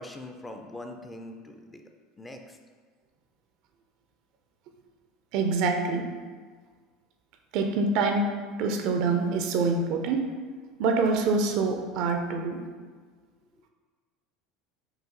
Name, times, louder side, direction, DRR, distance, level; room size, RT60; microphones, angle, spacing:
voice 1, 0.0-1.8 2.2-2.6, left 1 dB, 10° left, 4 dB, 0.4 m, -42 dB
voice 2, 5.3-6.1 7.5-8.3 8.6-10.3 10.8-12.6, right 4 dB, 55° right, 4 dB, 0.4 m, -25 dB
4.8 x 2.5 x 3.7 m, 1.5 s
figure-of-eight pair, 70°, 0 cm